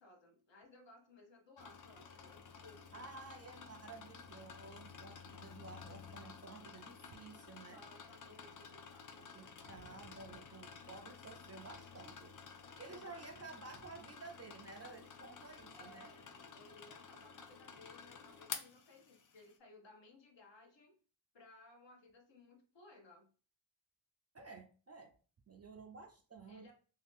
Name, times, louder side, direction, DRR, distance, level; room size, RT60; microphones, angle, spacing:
voice 1, 0.0-3.1 7.4-9.3 12.9-13.3 15.7-21.0 21.3-23.3 26.5-26.7, left 2 dB, 60° left, 3 dB, 0.9 m, -61 dB
sound 1, 1.6-19.5, left 6 dB, 40° left, 0.4 m, -52 dB
voice 2, 2.9-7.8 9.2-12.4 12.8-16.1 24.3-25.1 25.5-26.7, right 3 dB, 35° right, 4 dB, 0.4 m, -53 dB
2.7 x 2.4 x 3.4 m, 0.39 s
wide cardioid pair, 110°, 49 cm